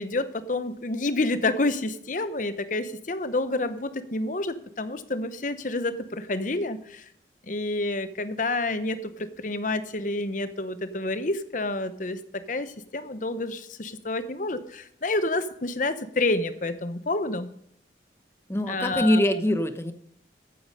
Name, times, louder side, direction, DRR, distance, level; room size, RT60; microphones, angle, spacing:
voice 1, 0.0-7.1 7.4-17.5 18.7-19.2, left 2 dB, 45° left, 12 dB, 0.9 m, -29 dB
voice 2, 18.5-19.9, left 1 dB, 15° left, 9 dB, 0.8 m, -23 dB
13.5 x 8.6 x 5.5 m, 0.71 s
head